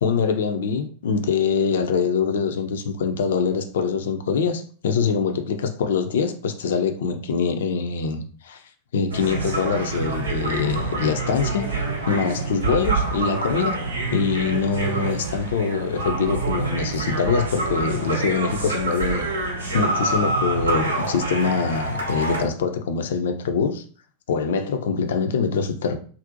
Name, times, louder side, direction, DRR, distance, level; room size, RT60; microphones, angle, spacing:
voice 1, 0.0-8.6 8.9-11.6 12.1-13.8 14.1-19.3 19.7-23.8 24.3-26.0, left 5 dB, 60° left, 0.3 m, -24 dB
sound 1, 9.1-22.4, right 3 dB, 75° right, 0.5 m, -27 dB
2.5 x 2.0 x 2.6 m
figure-of-eight pair, 90°, 0 cm